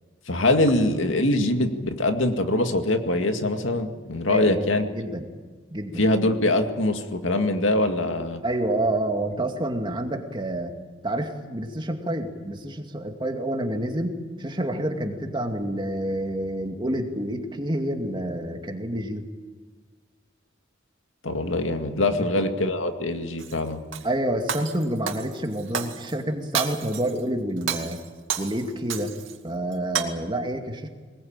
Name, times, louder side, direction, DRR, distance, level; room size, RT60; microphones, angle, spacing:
voice 1, 0.3-4.8 6.0-8.4 21.2-23.8, left 1 dB, 80° left, 6 dB, 2.2 m, -23 dB
voice 2, 4.3-5.3 5.7-6.0 8.4-10.7 11.0-19.3 22.2-22.3 24.0-28.0 28.4-29.1 29.4-30.9, right 1 dB, 25° right, 4 dB, 2.4 m, -28 dB
Shatter, 23.4-24.1 24.5-26.1 26.5-27.2 27.6-29.4 29.7-30.0, right 8 dB, 85° right, 2.3 m, -31 dB
22.5 x 20.5 x 8.9 m, 1.4 s
head